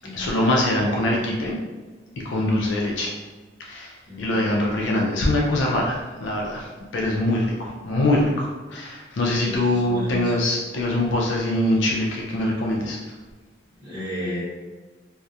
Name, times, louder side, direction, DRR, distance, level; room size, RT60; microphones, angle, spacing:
voice 1, 0.2-1.6 2.2-3.1 3.7-6.7 6.9-13.0, left 1 dB, 75° left, -2 dB, 0.4 m, -23 dB
voice 2, 4.0-4.6 9.2-10.5 13.8-14.4, left 1 dB, 5° right, -14 dB, 1.0 m, -34 dB
2.3 x 2.0 x 2.7 m, 1.3 s
head